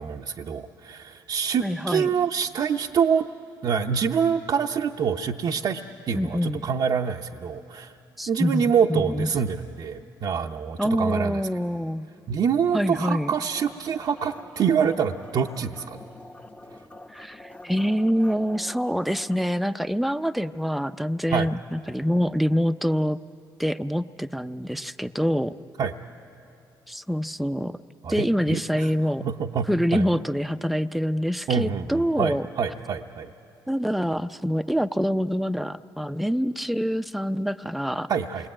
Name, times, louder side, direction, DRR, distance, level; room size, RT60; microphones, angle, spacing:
voice 1, 0.0-3.2 3.6-5.8 6.1-7.9 8.3-11.4 12.3-16.0 21.3-21.5 25.8-25.9 28.0-28.9 29.2-30.1 31.5-33.3 38.1-38.5, right 7 dB, 60° right, 1 dB, 0.7 m, -26 dB
voice 2, 1.6-2.1 6.1-6.7 8.2-9.3 10.8-12.1 12.7-13.3 17.1-23.2 23.6-25.6 26.9-27.8 28.1-29.2 29.7-32.5 33.7-38.1, equal, ahead, 11 dB, 0.6 m, -25 dB
sound 1, 13.4-19.4, left 1 dB, 15° left, 0.9 m, -46 dB
28.0 x 21.0 x 8.8 m, 2.7 s
cardioid pair, 80°, 8 cm